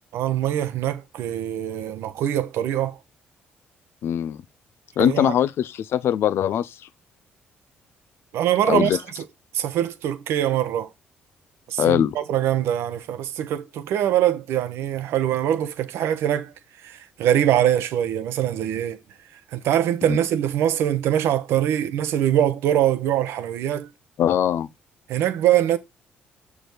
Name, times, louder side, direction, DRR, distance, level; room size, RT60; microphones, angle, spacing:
voice 1, 0.1-3.0 5.0-5.3 8.3-9.0 9.5-10.9 11.7-16.5 16.8-19.0 19.5-23.9 25.1-25.8, right 11 dB, 75° right, 0.9 m, -23 dB
voice 2, 4.0-4.4 5.0-6.8 8.7-9.0 11.8-12.2 20.1-20.2 24.2-24.7, left 10 dB, 65° left, 0.5 m, -21 dB
6.6 x 4.9 x 4.5 m
supercardioid pair, 55°, 4 cm